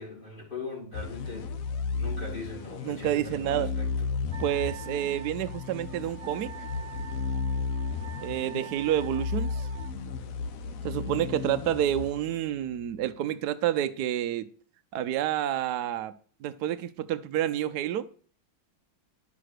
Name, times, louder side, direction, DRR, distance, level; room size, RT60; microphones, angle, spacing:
voice 1, 0.0-1.6 1.9-3.9, left 3 dB, 25° left, 1 dB, 3.2 m, -40 dB
sound 1, 0.9-12.8, left 5 dB, 60° left, 0.9 m, -34 dB
voice 2, 2.8-3.7 4.4-6.5 8.2-9.7 10.8-14.5 14.9-16.1 16.4-18.1, right 11 dB, 70° right, 10 dB, 0.9 m, -29 dB
Wind instrument woodwind instrument, 4.3-9.9, right 10 dB, 15° right, 1.2 m, -46 dB
11.0 x 6.0 x 6.5 m, 0.43 s
omnidirectional pair, 2.2 m